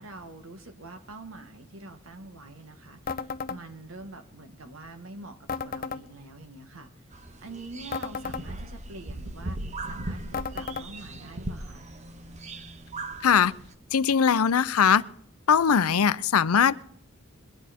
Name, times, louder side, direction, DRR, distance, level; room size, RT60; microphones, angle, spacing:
voice 1, 0.0-11.9, right 2 dB, 75° right, 1.6 m, -45 dB
sound 1, 3.1-3.6 5.5-6.0 7.9-8.5 10.3-10.9, left 5 dB, 40° left, 0.5 m, -33 dB
sound 2, 7.1-13.7, right 2 dB, 30° right, 0.8 m, -38 dB
voice 2, 13.2-13.5 13.9-15.0 15.5-16.8, left 7 dB, 90° left, 0.5 m, -21 dB
22.0 x 10.5 x 4.3 m
head